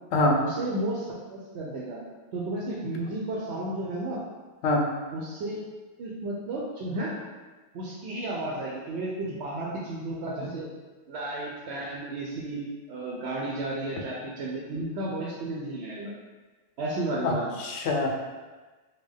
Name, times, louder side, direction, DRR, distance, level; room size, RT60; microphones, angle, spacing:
voice 1, 0.4-2.0 2.3-4.2 5.1-5.6 6.0-7.1 7.7-10.7 11.1-16.1 16.8-17.5, right 2 dB, 80° right, -4 dB, 0.8 m, -33 dB
voice 2, 17.2-18.1, left 2 dB, 75° left, 0 dB, 0.8 m, -24 dB
3.6 x 2.2 x 3.4 m, 1.3 s
omnidirectional pair, 1.1 m